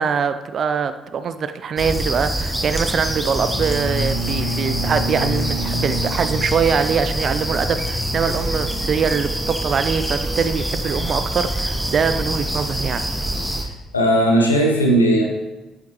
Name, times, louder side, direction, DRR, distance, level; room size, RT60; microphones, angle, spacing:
voice 1, 0.0-13.1, right 6 dB, 50° right, 11 dB, 0.6 m, -23 dB
sound 1, 1.8-13.6, right 1 dB, 5° right, 1.3 m, -25 dB
Bowed string instrument, 3.3-7.2, equal, 40° left, 3.4 m, -28 dB
voice 2, 13.6-15.2, right 1 dB, 90° left, 1 dB, 1.1 m, -17 dB
9.5 x 8.4 x 3.1 m, 1.1 s
figure-of-eight pair, 45°, 0 cm